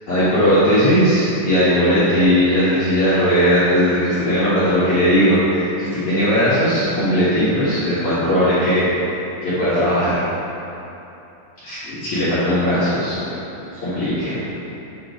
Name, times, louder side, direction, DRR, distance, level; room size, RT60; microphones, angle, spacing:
voice 1, 0.1-9.0 9.4-10.2 11.6-13.2 13.8-14.3, equal, 75° left, -13 dB, 1.7 m, -18 dB
8.8 x 3.0 x 5.1 m, 2.9 s
omnidirectional pair, 5.7 m